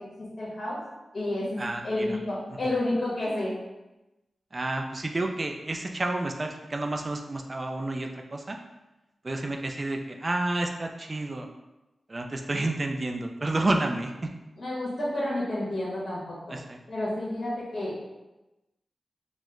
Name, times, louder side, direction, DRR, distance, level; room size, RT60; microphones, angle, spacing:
voice 1, 0.2-0.8 1.1-3.5 14.6-16.6 16.9-17.9, left 1 dB, 55° left, -6 dB, 1.3 m, -30 dB
voice 2, 1.6-2.2 4.5-8.6 9.2-11.5 12.1-14.3 16.5-16.8, right 2 dB, 40° right, 3 dB, 0.3 m, -30 dB
3.1 x 2.0 x 3.5 m, 1.0 s
cardioid pair, 55°, 0 cm